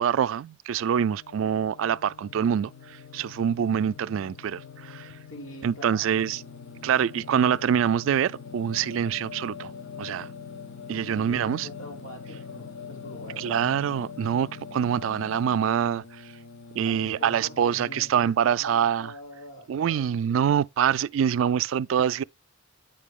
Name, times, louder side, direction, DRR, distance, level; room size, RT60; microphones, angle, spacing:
voice 1, 0.0-2.7 3.1-5.1 5.6-6.4 6.8-9.7 10.0-10.3 10.9-11.7 13.4-16.0 16.8-19.1 19.7-22.2, right 8 dB, 80° right, 0.3 m, -25 dB
Singing, 1.0-18.1, left 6 dB, 65° left, 0.7 m, -43 dB
voice 2, 5.3-6.2 11.0-13.7 16.8-20.5, left 1 dB, 85° left, 2.9 m, -44 dB
9.0 x 4.9 x 3.6 m
head